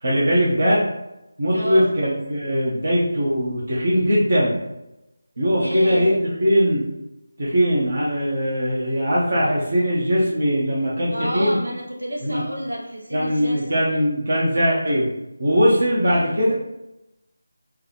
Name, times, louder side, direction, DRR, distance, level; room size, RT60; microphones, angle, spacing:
voice 1, 0.0-0.8 1.4-4.6 5.4-6.1 6.4-6.8 7.4-11.6 12.2-12.4 13.1-15.1 15.4-16.6, equal, 60° right, -6 dB, 1.0 m, -20 dB
voice 2, 1.5-1.9 5.6-6.2 11.1-13.9 16.0-16.4, equal, 85° right, -2 dB, 0.9 m, -31 dB
3.6 x 2.3 x 3.1 m, 0.90 s
figure-of-eight pair, 160°, 0 cm